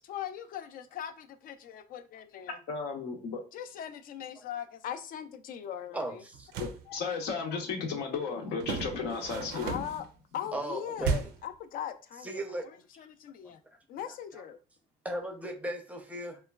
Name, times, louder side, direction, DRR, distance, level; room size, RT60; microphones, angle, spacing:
voice 1, 0.1-2.6 3.5-6.2 9.6-10.0 10.3-12.3 13.0-13.6 13.9-14.6, left 9 dB, 55° left, 0.4 m, -40 dB
voice 2, 2.7-3.4 6.6-9.8, left 5 dB, 80° left, 0.7 m, -34 dB
voice 3, 5.9-6.5 10.5-11.3 12.2-12.7 13.4-13.5 14.0-14.4 15.0-16.4, right 1 dB, 10° right, 0.5 m, -37 dB
sound 1, 6.3-6.8 8.6-10.1 11.0-11.5, right 5 dB, 80° right, 0.4 m, -34 dB
3.0 x 2.2 x 2.2 m
cardioid pair, 110°, 17 cm